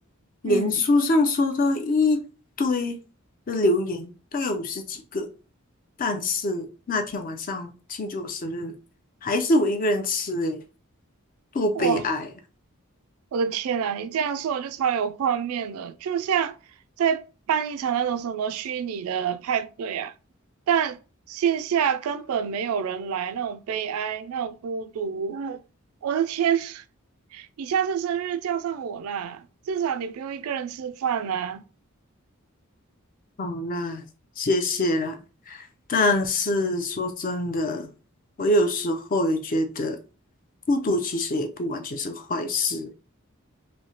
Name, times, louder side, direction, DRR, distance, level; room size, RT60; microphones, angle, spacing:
voice 1, 0.4-2.2 2.6-3.0 3.5-5.3 6.0-8.8 9.2-10.6 11.5-12.3 33.4-34.1 34.4-35.2 35.5-37.9 38.4-40.0 40.7-42.9, left 2 dB, 40° left, 0.5 m, -25 dB
voice 2, 13.3-16.6 17.0-20.1 20.7-21.0 21.3-25.6 26.0-26.8 27.3-31.6, right 8 dB, 90° right, 0.3 m, -27 dB
3.1 x 2.7 x 2.8 m
head